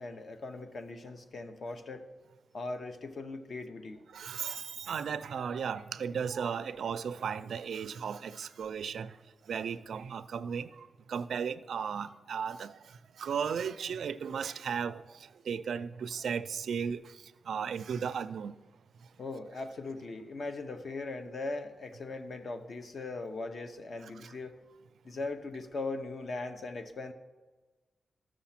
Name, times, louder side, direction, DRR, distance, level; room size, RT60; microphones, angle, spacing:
voice 1, 0.0-2.1 2.5-4.0 19.2-24.6 25.0-27.1, left 3 dB, 45° left, 0.8 m, -39 dB
voice 2, 4.1-9.2 9.5-12.8 13.2-15.2 15.5-17.0 17.5-18.6 24.2-24.3, right 7 dB, 75° right, 0.4 m, -35 dB
13.5 x 6.3 x 5.8 m
wide cardioid pair, 175°, 0 cm